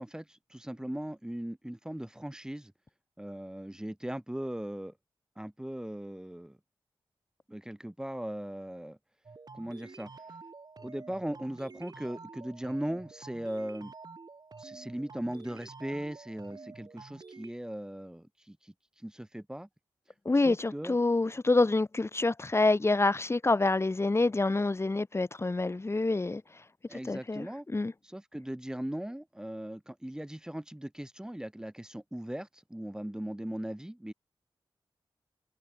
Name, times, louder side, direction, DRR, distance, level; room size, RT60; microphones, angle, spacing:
voice 1, 0.0-2.7 3.2-4.9 5.4-6.6 7.5-9.0 9.5-10.1 10.8-13.9 14.6-18.7 19.0-19.7 20.4-21.0 26.9-27.7 28.0-34.1, right 1 dB, 5° right, 2.7 m, -38 dB
sound 1, 9.2-17.5, right 4 dB, 45° right, 5.1 m, -49 dB
voice 2, 20.3-26.4 27.1-27.9, left 2 dB, 30° left, 2.4 m, -27 dB
wide cardioid pair, 105°, 9 cm